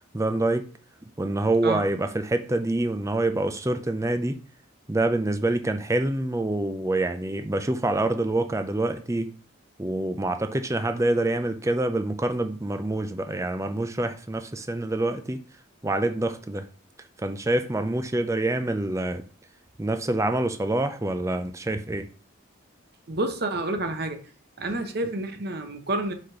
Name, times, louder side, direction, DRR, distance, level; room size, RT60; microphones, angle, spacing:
voice 1, 0.1-0.7 1.2-4.4 4.9-9.3 9.8-15.4 15.8-16.7 17.2-19.2 19.8-22.1, right 2 dB, 15° right, 0.5 m, -26 dB
voice 2, 23.1-24.2 24.6-26.1, right 2 dB, 50° right, 0.9 m, -29 dB
5.0 x 4.1 x 5.7 m
head